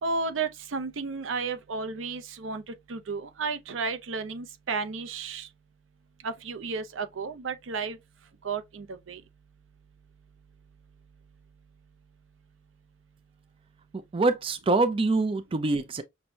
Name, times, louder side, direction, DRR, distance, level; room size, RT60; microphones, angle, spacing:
voice 1, 0.0-5.5 6.2-8.0 8.4-9.2, right 4 dB, 85° right, 0.6 m, -33 dB
voice 2, 14.1-16.0, right 3 dB, 30° right, 0.4 m, -25 dB
6.0 x 2.2 x 2.6 m
head